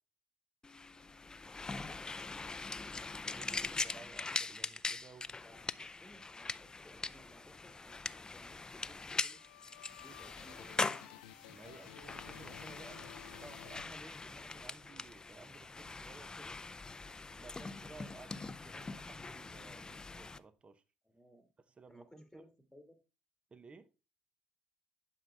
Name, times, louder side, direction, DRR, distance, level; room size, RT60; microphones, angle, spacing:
sound 1, 0.6-20.4, left 3 dB, 20° left, 0.5 m, -42 dB
voice 1, 1.6-2.0 5.4-9.4 10.0-11.1 12.9-13.0 21.0-21.5 21.9-23.0, equal, ahead, 1.7 m, -61 dB
voice 2, 3.2-5.4 11.5-16.6 17.3-20.8 21.8-22.5 23.5-23.9, right 4 dB, 30° right, 0.8 m, -56 dB
sound 2, 8.9-14.5, left 15 dB, 85° left, 0.5 m, -55 dB
11.0 x 5.5 x 3.3 m
hypercardioid pair, 65°, 4 cm